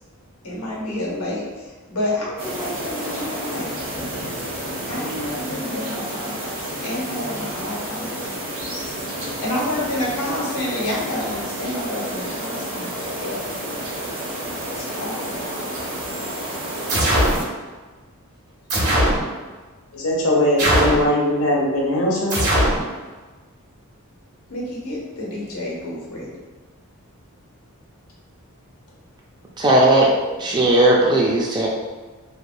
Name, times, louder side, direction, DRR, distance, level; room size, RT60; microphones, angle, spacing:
voice 1, 0.4-3.7 4.9-8.4 9.2-13.4 14.7-15.8 24.5-26.3, left 1 dB, 90° left, -4 dB, 1.0 m, -29 dB
sound 1, 2.4-17.4, right 1 dB, 60° right, 0.7 m, -30 dB
sound 2, 16.9-17.4 18.7-19.2 20.6-21.1 22.3-22.8, right 1 dB, 85° right, 1.4 m, -19 dB
voice 2, 19.9-22.4, left 1 dB, 65° left, -3 dB, 0.7 m, -20 dB
voice 3, 29.6-30.1 30.4-31.7, right 1 dB, 20° right, -2 dB, 0.3 m, -16 dB
3.2 x 2.2 x 2.5 m, 1.3 s
head